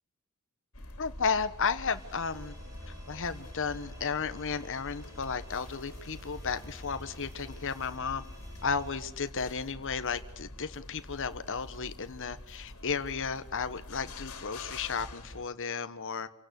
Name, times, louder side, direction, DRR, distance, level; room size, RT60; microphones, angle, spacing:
sound 1, 0.7-15.4, left 1 dB, 75° left, 3.0 m, -46 dB
voice 1, 1.0-2.5 3.1-8.2 8.6-16.3, left 5 dB, 60° left, 11 dB, 1.2 m, -33 dB
sound 2, 1.9-9.1, equal, 15° right, 6.4 m, -52 dB
27.0 x 17.0 x 8.3 m, 0.84 s
head